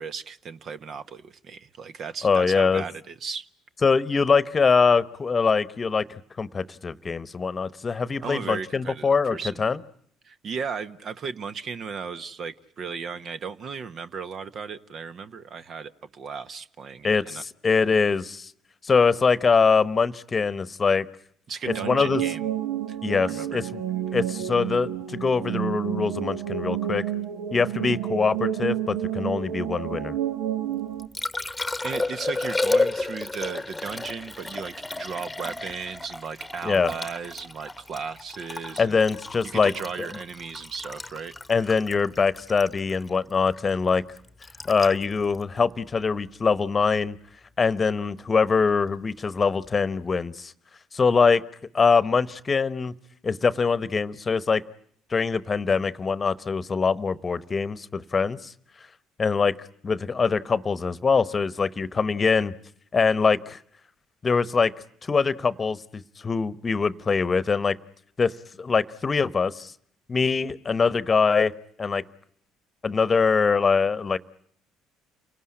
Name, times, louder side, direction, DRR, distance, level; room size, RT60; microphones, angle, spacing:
voice 1, 0.0-3.4 8.2-9.6 10.2-17.4 21.5-22.5 22.9-23.0 23.2-23.6 31.8-39.0 39.5-41.3, right 5 dB, 50° right, 12 dB, 1.1 m, -36 dB
voice 2, 2.2-2.8 3.8-6.0 6.4-9.8 17.0-18.5 18.8-21.1 21.7-22.2 23.0-23.8 24.1-27.1 27.5-30.1 36.6-36.9 38.8-39.7 40.0-40.1 41.5-44.0 44.6-47.2 47.6-50.5 50.9-51.4 51.7-52.9 53.2-54.6 55.1-58.5 59.2-59.6 59.8-62.5 62.9-63.6 64.2-64.7 65.0-67.8 68.2-69.7 70.1-71.5 71.8-72.0 72.8-74.2, left 5 dB, 35° left, 17 dB, 1.0 m, -23 dB
sound 1, 21.7-31.1, right 11 dB, 75° right, 1.3 m, -30 dB
Liquid, 30.7-46.8 49.6-49.8, left 2 dB, 15° left, 1.2 m, -32 dB
29.5 x 18.5 x 9.9 m, 0.65 s
hypercardioid pair, 60°, 0 cm